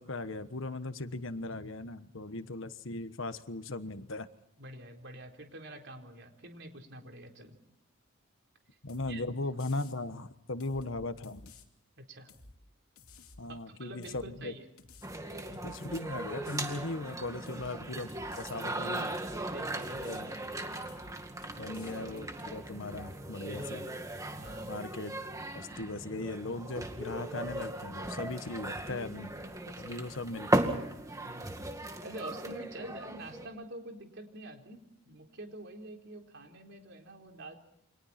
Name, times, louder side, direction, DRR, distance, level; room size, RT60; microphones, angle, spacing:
voice 1, 0.0-4.3 8.8-11.5 13.4-14.5 15.6-19.2 19.9-20.3 21.6-23.9 24.6-25.1 25.5-29.3 29.8-30.6, left 2 dB, 65° left, 11 dB, 1.3 m, -38 dB
voice 2, 4.6-7.6 9.1-9.3 12.0-12.3 13.5-14.6 18.5-18.7 19.5-20.1 23.5-23.7 24.4-24.7 29.9-30.1 31.2-31.5 32.0-37.6, right 1 dB, 55° right, 3 dB, 4.1 m, -47 dB
sound 1, 8.9-9.2 9.6-10.0 10.6-11.7 12.3-12.6 13.0-13.4 14.0-14.3 14.8-16.0 16.4-16.8 17.5-17.7 18.1-18.5 19.1-19.4 19.8-20.2 20.9-21.2 21.4-22.6, left 3 dB, 90° left, 2.8 m, -54 dB
sound 2, 15.0-33.5, right 1 dB, 15° right, 2.1 m, -37 dB
29.5 x 25.5 x 4.4 m, 0.80 s
head